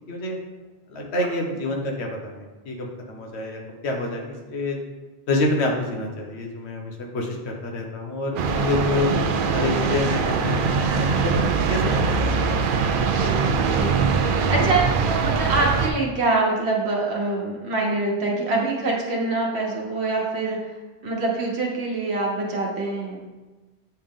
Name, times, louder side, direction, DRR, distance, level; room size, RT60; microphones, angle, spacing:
voice 1, 0.9-4.8 5.3-9.1 9.5-12.4, left 2 dB, 85° left, 1 dB, 1.2 m, -27 dB
sound 1, 8.4-15.9, right 5 dB, 60° right, 0.6 m, -22 dB
voice 2, 8.9-9.3 13.6-20.6 21.0-23.2, right 3 dB, 75° right, -2 dB, 1.3 m, -25 dB
8.2 x 3.4 x 3.7 m, 1.2 s
omnidirectional pair, 1.1 m